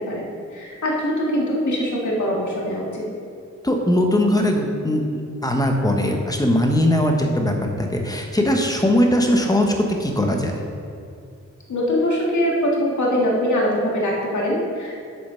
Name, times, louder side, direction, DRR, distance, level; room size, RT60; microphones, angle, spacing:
voice 1, 0.0-3.1 11.7-15.0, equal, 80° left, -3 dB, 2.0 m, -23 dB
voice 2, 3.6-5.0 5.4-9.7 10.0-10.6, left 1 dB, 15° left, 2 dB, 1.0 m, -20 dB
7.9 x 6.5 x 5.6 m, 2.4 s
wide cardioid pair, 120°, 29 cm